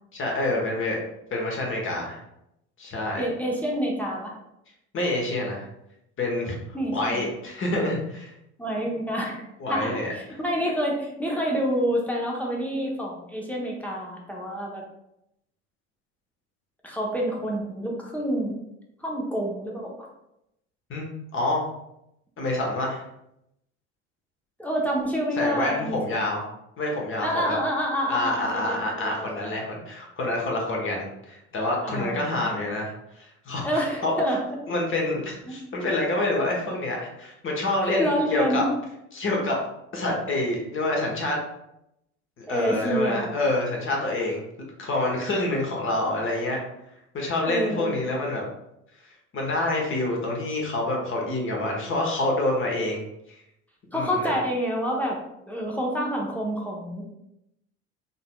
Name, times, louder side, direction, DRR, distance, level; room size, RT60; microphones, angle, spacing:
voice 1, 0.1-1.0 1.3-2.2 2.8-3.2 4.9-5.7 6.2-8.3 9.6-10.4 20.9-21.6 22.4-23.0 25.4-26.4 26.8-27.6 28.1-34.4 34.7-38.6 39.1-39.6 39.9-41.4 42.4-44.4 44.8-46.6 47.1-48.5 49.0-53.0 53.3-53.4 53.9-54.4, left 2 dB, 35° left, -1 dB, 1.2 m, -27 dB
voice 2, 3.2-4.4 6.7-7.2 8.6-14.8 16.8-18.6 19.0-20.0 24.6-26.0 27.2-29.7 31.8-32.6 33.6-34.4 35.5-35.6 38.0-38.7 42.5-43.3 47.4-47.9 53.9-55.2 55.5-57.0, equal, 5° left, -2 dB, 0.8 m, -28 dB
3.9 x 2.8 x 2.3 m, 0.82 s
hypercardioid pair, 70°, 36 cm